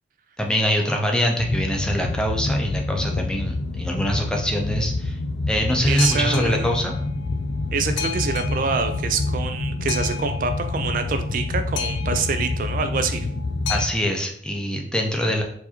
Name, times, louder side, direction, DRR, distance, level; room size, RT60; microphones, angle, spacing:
voice 1, 0.4-5.2 5.5-6.9 13.7-15.4, equal, 5° left, 1 dB, 0.6 m, -24 dB
Boat Water vehicle, 1.4-13.9, left 3 dB, 75° left, 0.4 m, -27 dB
voice 2, 5.9-6.7 7.7-13.3, right 5 dB, 45° right, 8 dB, 0.3 m, -26 dB
4.6 x 2.7 x 4.2 m, 0.65 s
head